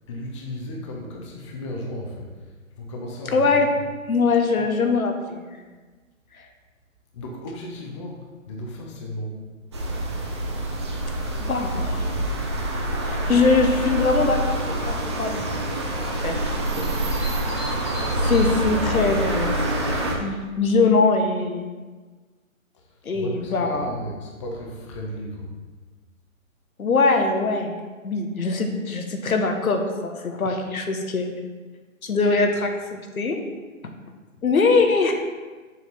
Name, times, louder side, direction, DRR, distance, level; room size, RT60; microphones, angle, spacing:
voice 1, 0.1-2.5 2.8-3.7 4.6-4.8 7.1-9.5 22.7-25.5, left 1 dB, 20° left, -1 dB, 0.8 m, -35 dB
voice 2, 3.3-3.7 4.1-5.5 6.3-6.5 11.4-12.4 13.0-14.6 14.9-15.4 15.8-16.5 16.7-16.9 17.3-17.4 18.2-21.7 23.0-24.0 26.8-27.7 28.0-31.3 32.0-33.4 34.4-35.1, left 3 dB, 80° left, 4 dB, 1.2 m, -22 dB
sound 1, 9.7-20.1, right 1 dB, 20° right, 0.6 m, -26 dB
sound 2, 15.8-19.4, left 1 dB, 60° left, 1.9 m, -43 dB
6.9 x 4.3 x 4.1 m, 1.3 s
hypercardioid pair, 150°, 41 cm